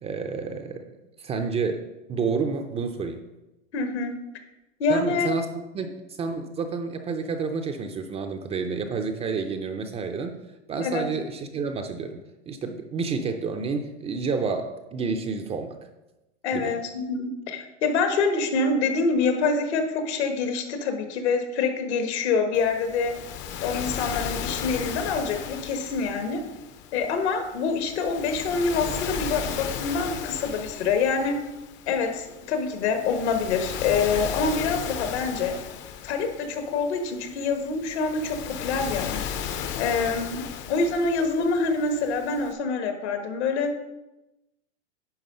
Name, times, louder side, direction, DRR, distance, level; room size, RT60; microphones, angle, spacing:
voice 1, 0.0-1.8 2.1-3.2 4.9-5.5 5.7-10.4 10.7-15.8 16.5-16.7, right 4 dB, 20° right, 6 dB, 0.4 m, -29 dB
voice 2, 3.7-4.1 4.8-5.3 10.8-11.0 16.4-23.1 23.6-26.4 26.9-31.4 31.9-35.6 36.0-39.2 39.8-43.7, left 4 dB, 70° left, 6 dB, 1.4 m, -26 dB
Waves surf, 22.5-42.5, left 8 dB, 35° left, 0.6 m, -36 dB
10.5 x 3.6 x 5.4 m, 1.0 s
hypercardioid pair, 120°, 34 cm